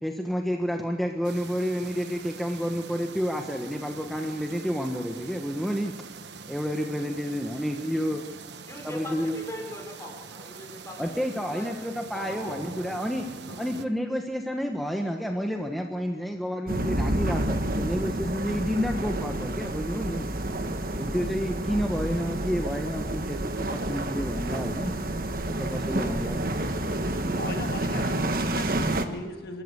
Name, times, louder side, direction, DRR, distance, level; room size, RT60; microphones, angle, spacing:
voice 1, 0.0-5.9 6.5-8.2 8.8-9.4 11.0-13.3 13.6-20.3 21.0-24.9 25.5-26.4 27.9-28.1, equal, ahead, 2 dB, 1.3 m, -30 dB
sound 1, 1.2-13.9, right 5 dB, 70° right, 1.1 m, -44 dB
voice 2, 8.7-11.7 12.1-13.6, left 1 dB, 15° left, 1 dB, 4.4 m, -42 dB
sound 2, 16.7-29.1, right 1 dB, 50° right, 1.4 m, -29 dB
voice 3, 27.4-29.6, left 1 dB, 60° left, 5 dB, 2.0 m, -38 dB
26.5 x 14.0 x 8.2 m, 1.4 s
head